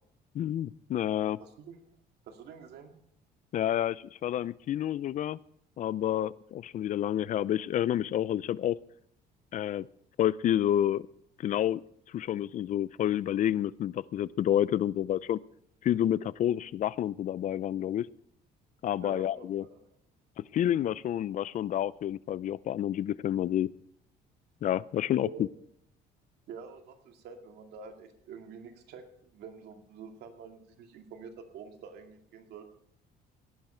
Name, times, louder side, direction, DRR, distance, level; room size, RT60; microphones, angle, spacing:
voice 1, 0.3-1.4 3.5-5.4 5.8-8.8 9.5-9.9 10.2-11.1 11.4-11.8 12.1-15.4 15.8-18.1 18.8-19.6 20.4-23.7 24.6-25.5, left 11 dB, 50° left, 20 dB, 0.5 m, -29 dB
voice 2, 1.1-1.8 2.3-2.9 19.0-19.8 25.2-25.5 26.5-32.6, right 5 dB, 75° right, 4 dB, 2.2 m, -47 dB
17.5 x 10.5 x 4.4 m, 0.69 s
cardioid pair, 110°, 17 cm